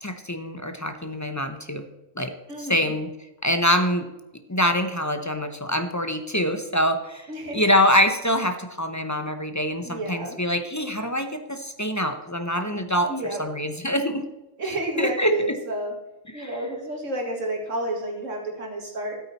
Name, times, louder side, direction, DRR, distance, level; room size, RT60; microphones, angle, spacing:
voice 1, 0.0-1.8 2.2-2.3 2.6-3.1 3.4-4.1 4.5-7.3 7.5-13.1 13.4-14.2 15.0-15.5 16.3-16.6, equal, 20° left, 7 dB, 0.5 m, -24 dB
voice 2, 2.5-2.9 7.3-7.6 9.8-10.4 13.1-13.4 14.6-15.9 16.3-19.2, right 1 dB, 75° right, 1 dB, 2.3 m, -30 dB
13.0 x 8.4 x 4.2 m, 0.96 s
omnidirectional pair, 1.3 m